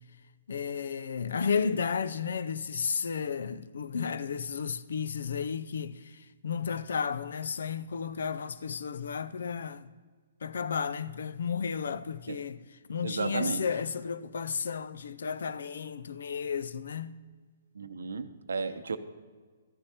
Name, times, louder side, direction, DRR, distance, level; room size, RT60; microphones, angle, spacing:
voice 1, 0.5-9.9 10.4-12.6 12.9-17.2, left 6 dB, 75° left, 0.5 m, -33 dB
voice 2, 13.0-13.6 17.7-19.0, right 4 dB, 85° right, 0.6 m, -33 dB
14.0 x 9.7 x 2.9 m
hypercardioid pair, 135°, 0 cm